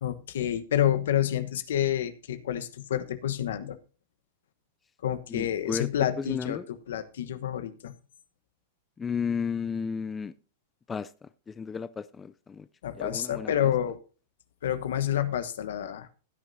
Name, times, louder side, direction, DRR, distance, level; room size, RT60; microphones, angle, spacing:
voice 1, 0.0-3.8 5.0-7.9 12.8-14.0 14.6-16.1, left 10 dB, 80° left, 10 dB, 1.1 m, -29 dB
voice 2, 5.3-5.9 6.2-6.7 9.0-10.3 10.9-12.7 13.0-13.5, left 6 dB, 15° left, 14 dB, 0.4 m, -33 dB
16.0 x 9.3 x 2.7 m, 0.36 s
hypercardioid pair, 125°, 0 cm